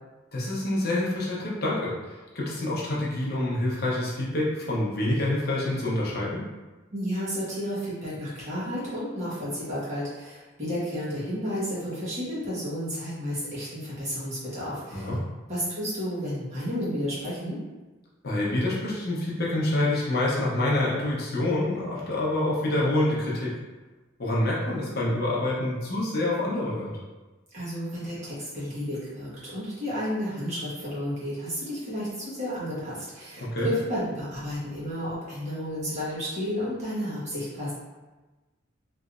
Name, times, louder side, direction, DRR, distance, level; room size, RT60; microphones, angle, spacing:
voice 1, 0.3-6.4 14.9-15.2 18.2-23.5 24.2-26.9 33.4-33.7, left 1 dB, 50° left, -6 dB, 0.8 m, -27 dB
voice 2, 6.9-15.1 15.5-17.6 27.5-37.7, equal, 35° right, -9 dB, 1.3 m, -32 dB
3.2 x 3.0 x 2.5 m, 1.2 s
head